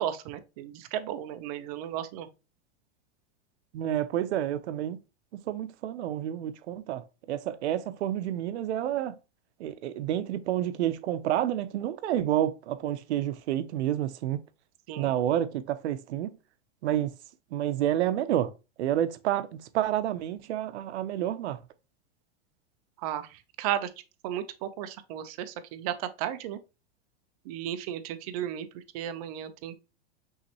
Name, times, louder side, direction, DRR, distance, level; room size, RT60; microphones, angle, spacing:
voice 1, 0.0-2.3 14.9-15.1 23.0-23.9 24.2-26.6 27.4-29.8, right 11 dB, 35° right, 0.4 m, -34 dB
voice 2, 3.7-5.0 5.3-9.2 9.6-14.4 15.0-16.4 16.8-17.1 17.5-18.5 18.8-21.6, right 12 dB, 85° right, 0.6 m, -29 dB
5.6 x 3.1 x 2.9 m
supercardioid pair, 160°, 33 cm